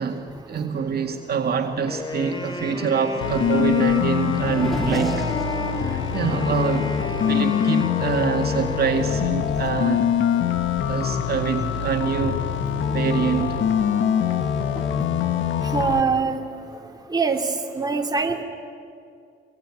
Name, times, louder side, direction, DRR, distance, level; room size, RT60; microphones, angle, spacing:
voice 1, 0.0-5.3 5.7-10.1 10.9-12.4 12.9-13.6, right 6 dB, 50° right, 2.1 m, -25 dB
Race car auto racing / Accelerating revving vroom, 1.7-17.5, equal, ahead, 4.3 m, -39 dB
Wind instrument woodwind instrument, 1.9-9.5, left 2 dB, 25° left, 3.9 m, -34 dB
sound 1, 3.2-16.0, left 8 dB, 75° left, 1.4 m, -24 dB
voice 2, 15.7-16.4 17.1-17.5 17.7-18.4, right 4 dB, 20° right, 2.7 m, -22 dB
25.0 x 21.5 x 9.9 m
cardioid pair, 90°, 20 cm